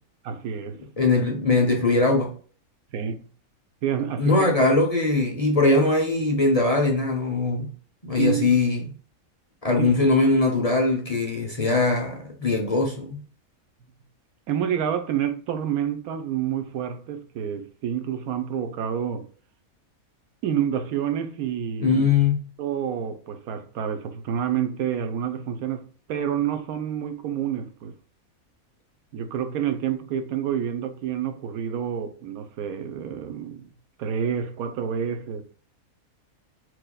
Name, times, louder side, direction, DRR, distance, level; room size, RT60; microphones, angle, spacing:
voice 1, 0.2-0.8 2.9-3.2 3.8-4.4 8.1-8.5 9.8-9.9 14.5-19.3 20.4-22.1 22.6-27.9 29.1-33.7 34.0-35.4, right 9 dB, 85° right, 1.2 m, -28 dB
voice 2, 1.0-2.3 4.2-7.7 8.0-8.9 9.6-13.2 21.8-22.4, left 3 dB, 35° left, 0.7 m, -21 dB
4.7 x 4.6 x 2.2 m
omnidirectional pair, 1.5 m